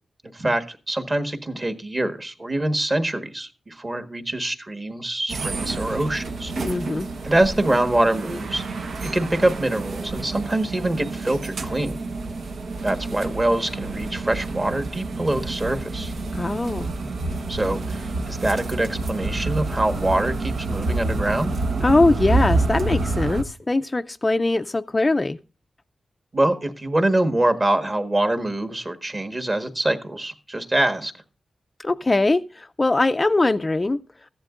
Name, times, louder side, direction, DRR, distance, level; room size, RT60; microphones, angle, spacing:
voice 1, 0.3-6.5 7.2-8.6 9.1-12.0 12.8-16.1 17.5-21.5 26.3-31.1, right 1 dB, 25° right, 7 dB, 1.4 m, -24 dB
sound 1, 5.3-23.4, right 2 dB, 80° right, 1.2 m, -28 dB
voice 2, 6.6-7.1 16.3-16.9 21.8-25.4 31.8-34.0, left 2 dB, 25° left, 8 dB, 0.4 m, -21 dB
15.0 x 11.0 x 2.5 m, 0.34 s
wide cardioid pair, 115°, 0 cm